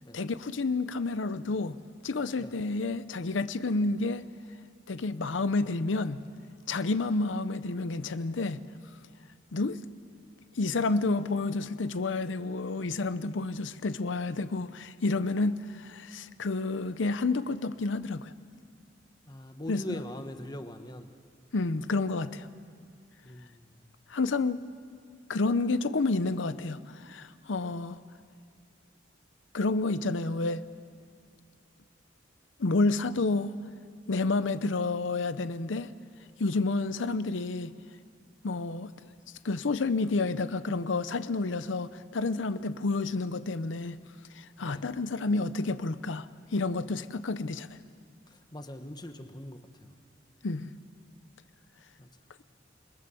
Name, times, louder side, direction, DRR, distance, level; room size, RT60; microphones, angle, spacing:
voice 1, 0.1-1.8 2.0-4.2 4.9-6.2 6.7-8.6 9.5-9.8 10.6-18.3 19.7-19.8 21.5-22.5 24.1-24.6 25.3-28.0 29.5-30.6 32.6-33.5 34.1-35.9 36.4-37.7 38.4-38.9 39.4-44.0 44.3-47.7 50.4-50.7, left 3 dB, 85° left, 13 dB, 0.7 m, -30 dB
voice 2, 19.3-21.1 23.2-23.8 44.6-44.8 48.3-49.9 52.0-52.1, left 1 dB, 20° left, 7 dB, 1.1 m, -42 dB
29.0 x 21.0 x 6.9 m, 2.1 s
head